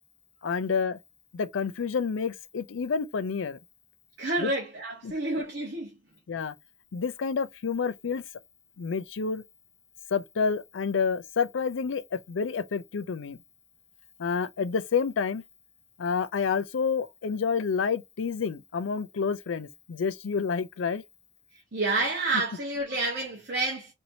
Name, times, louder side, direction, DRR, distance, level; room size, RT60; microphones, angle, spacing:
voice 1, 0.4-1.0 1.3-3.6 4.4-4.5 5.0-5.1 6.3-6.5 6.9-8.2 8.8-9.4 10.1-13.4 14.2-15.4 16.0-21.0, left 5 dB, 80° left, 0.4 m, -29 dB
voice 2, 4.2-5.9 21.7-23.9, right 2 dB, 55° right, 1.1 m, -29 dB
4.3 x 2.7 x 2.7 m
head